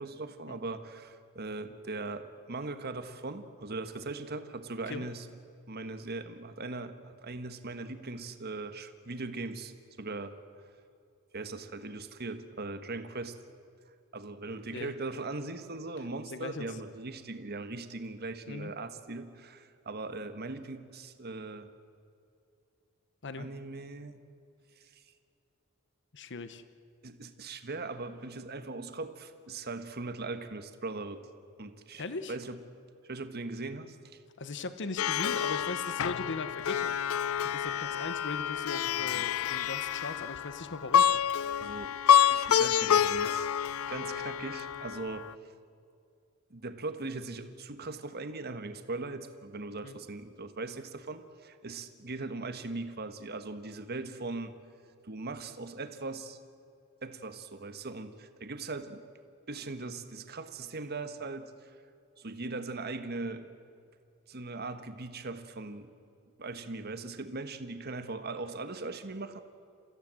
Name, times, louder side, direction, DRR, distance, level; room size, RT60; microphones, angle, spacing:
voice 1, 0.0-5.3 5.7-9.7 10.0-10.4 11.3-13.3 14.1-21.7 23.4-24.2 24.8-25.0 27.0-31.2 31.6-32.6 33.0-34.0 39.1-39.6 41.6-41.9 42.3-43.5 43.9-45.3 46.5-54.5 55.0-56.4 57.0-59.0 59.5-61.7 62.2-63.5 64.3-65.9 66.4-69.4, right 3 dB, 50° right, 9 dB, 1.4 m, -39 dB
voice 2, 16.3-16.7 18.5-18.7 23.2-23.5 26.1-26.6 31.9-32.3 34.4-36.9 37.4-41.1 49.8-50.0, left 3 dB, 60° left, 11 dB, 1.0 m, -39 dB
Plucked string instrument, 35.0-45.3, left 9 dB, 80° left, 0.5 m, -28 dB
29.0 x 15.5 x 7.7 m, 2.5 s
head